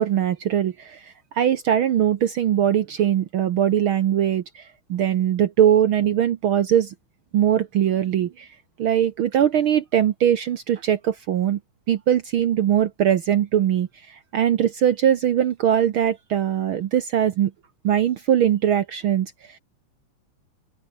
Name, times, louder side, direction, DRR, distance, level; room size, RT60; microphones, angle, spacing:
voice 1, 0.0-6.9 7.3-8.5 8.8-11.6 11.9-17.5 17.8-19.6, right 10 dB, 65° right, 1.3 m, -21 dB
open air
omnidirectional pair, 3.4 m